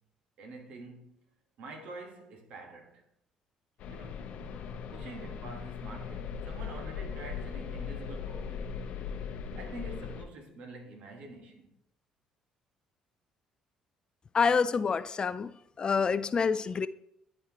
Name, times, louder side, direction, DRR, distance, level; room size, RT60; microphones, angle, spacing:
voice 1, 0.4-1.3 1.6-3.0 3.9-4.3 4.9-8.8 9.5-11.7, right 2 dB, 70° right, 1.3 m, -47 dB
sound 1, 3.8-10.2, left 6 dB, 70° left, 0.8 m, -39 dB
voice 2, 14.3-15.5 15.8-16.9, left 5 dB, 40° left, 0.3 m, -27 dB
11.0 x 4.2 x 2.9 m
supercardioid pair, 65°, 2 cm